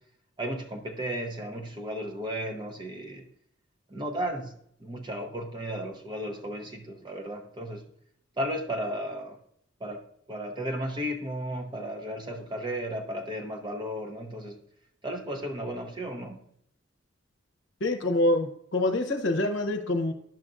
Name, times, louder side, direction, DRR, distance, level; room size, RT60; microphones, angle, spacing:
voice 1, 0.4-3.2 3.9-4.5 4.8-7.8 8.4-9.4 9.8-10.0 10.3-14.6 15.0-16.5, equal, 25° right, 0.8 m, -34 dB
voice 2, 17.8-20.1, left 1 dB, 70° left, 0.8 m, -26 dB
10.5 x 6.5 x 2.5 m
head